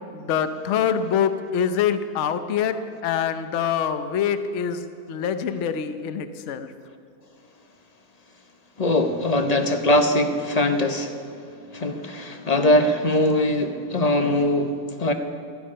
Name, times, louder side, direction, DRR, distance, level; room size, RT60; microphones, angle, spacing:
voice 1, 0.1-4.8 5.1-6.7, left 8 dB, 55° left, 10 dB, 1.0 m, -25 dB
voice 2, 8.8-11.2 11.7-15.1, left 1 dB, 30° left, 6 dB, 0.9 m, -21 dB
15.5 x 14.0 x 5.6 m, 2.4 s
omnidirectional pair, 1.7 m